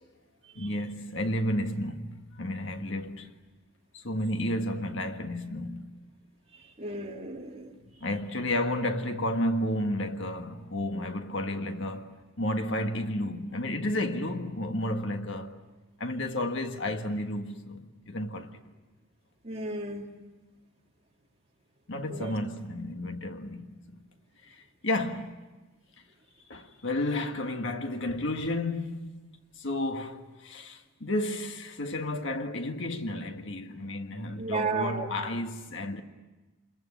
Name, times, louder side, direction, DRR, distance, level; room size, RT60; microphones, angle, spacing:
voice 1, 0.5-3.3 3.9-6.0 8.0-15.6 16.0-18.6 21.9-24.0 24.4-25.4 26.5-29.1 29.6-36.0, left 1 dB, 60° left, 1.7 m, -32 dB
voice 2, 6.5-7.8 19.4-20.1 22.1-22.3 34.4-35.1, right 3 dB, 30° right, 2.6 m, -34 dB
27.5 x 22.0 x 9.8 m
head